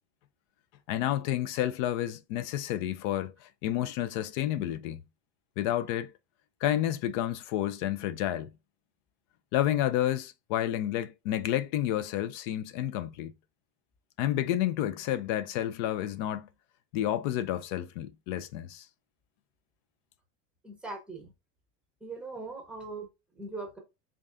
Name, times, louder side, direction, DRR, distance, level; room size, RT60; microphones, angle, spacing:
voice 1, 0.9-5.0 5.6-6.1 6.6-8.5 9.5-13.3 14.2-16.5 16.9-18.8, left 12 dB, 45° left, 0.4 m, -30 dB
voice 2, 20.6-21.3 22.0-23.1 23.4-23.8, right 3 dB, 5° right, 0.8 m, -40 dB
3.6 x 3.4 x 2.5 m
supercardioid pair, 170°, 33 cm